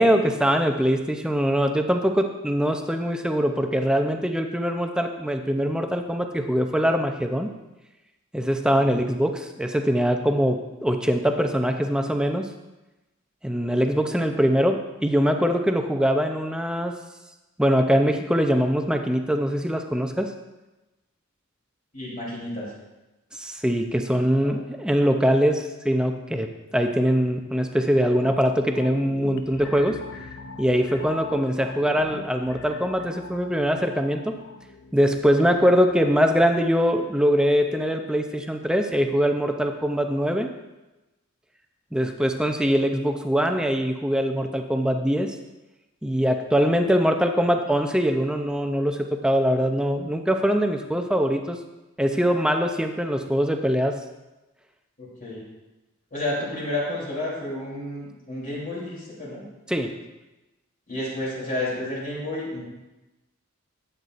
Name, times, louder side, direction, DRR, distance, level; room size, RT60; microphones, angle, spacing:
voice 1, 0.0-7.5 8.3-12.5 13.4-17.0 17.6-20.3 23.3-30.0 30.6-34.4 34.9-40.5 41.9-45.4 46.0-51.6 52.0-54.0 59.7-60.0, equal, 5° right, 5 dB, 0.5 m, -22 dB
voice 2, 21.9-22.7 55.0-55.4 56.1-59.4 60.9-62.7, left 1 dB, 40° left, -6 dB, 3.2 m, -31 dB
sound 1, 28.2-37.5 37.9-38.0, left 4 dB, 55° left, 0.5 m, -43 dB
12.0 x 8.0 x 2.5 m, 1.1 s
head